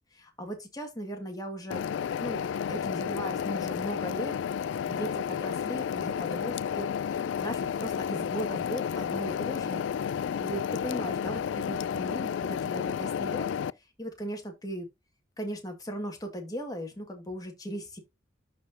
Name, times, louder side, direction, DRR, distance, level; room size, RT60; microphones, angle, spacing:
voice 1, 0.1-1.8 2.2-2.4 2.7-4.3 4.8-13.5 14.0-14.9 15.4-18.0, right 1 dB, 20° left, 1.7 m, -38 dB
sound 1, 1.7-13.7, left 8 dB, 80° left, 0.3 m, -31 dB
11.5 x 4.3 x 2.7 m
head